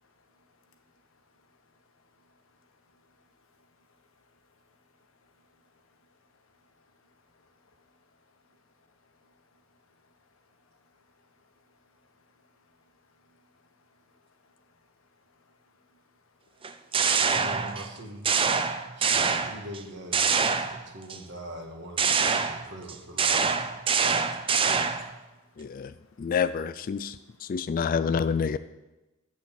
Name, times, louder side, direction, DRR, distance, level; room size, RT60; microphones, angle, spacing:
voice 1, 0.0-17.4 18.5-19.2 20.6-21.0 22.3-22.7 23.9-26.3 27.0-27.7, left 3 dB, 85° left, 4 dB, 1.3 m, -66 dB
sound 1, 16.6-17.9 18.2-19.8 20.1-21.2 22.0-25.1, right 5 dB, 25° right, 0.5 m, -25 dB
voice 2, 17.1-18.3 19.0-23.5, equal, 60° right, 2 dB, 1.8 m, -43 dB
voice 3, 25.6-25.9 26.2-27.2 27.4-28.6, left 6 dB, 45° left, 14 dB, 0.3 m, -27 dB
8.3 x 6.4 x 7.3 m, 1.0 s
head